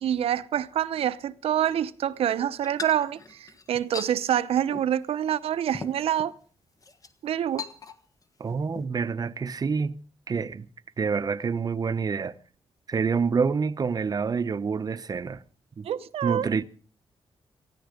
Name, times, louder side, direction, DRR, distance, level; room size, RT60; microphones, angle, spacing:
voice 1, 0.0-6.3 7.2-7.7 15.8-16.5, right 10 dB, 90° right, 0.9 m, -26 dB
sound 1, 2.6-4.1 4.7-5.0 5.3-5.4 5.7-6.3 6.8-7.1 7.6-8.2 8.5-8.9, left 4 dB, 35° left, 1.5 m, -39 dB
voice 2, 8.4-10.0 10.3-10.7 11.0-12.3 12.9-15.4 15.8-15.9 16.2-16.6, right 5 dB, 40° right, 0.9 m, -27 dB
18.5 x 15.0 x 5.1 m
cardioid pair, 105°, 10 cm